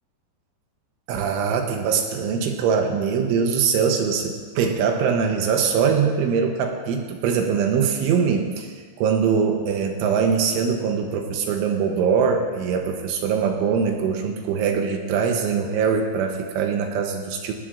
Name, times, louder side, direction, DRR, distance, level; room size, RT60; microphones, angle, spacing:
voice 1, 1.1-17.5, right 6 dB, 75° right, 3 dB, 3.2 m, -22 dB
19.0 x 19.0 x 2.5 m, 1.5 s
omnidirectional pair, 5.9 m